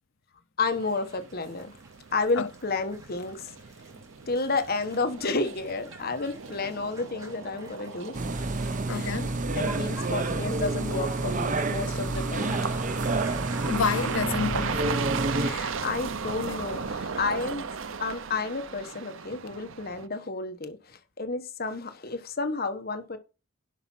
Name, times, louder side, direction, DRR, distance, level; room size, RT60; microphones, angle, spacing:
voice 1, 0.6-1.8 2.1-3.5 4.3-8.2 8.9-9.2 9.5-13.2 15.3-17.6 18.0-23.2, left 3 dB, 50° left, 1.3 m, -31 dB
sound 1, 0.6-17.6, right 1 dB, 15° right, 3.2 m, -49 dB
sound 2, 0.8-20.1, right 5 dB, 75° right, 0.7 m, -37 dB
sound 3, 8.1-15.5, right 2 dB, 40° right, 0.8 m, -29 dB
voice 2, 8.9-9.4 13.7-15.4, left 6 dB, 80° left, 0.6 m, -30 dB
10.5 x 5.8 x 5.6 m
head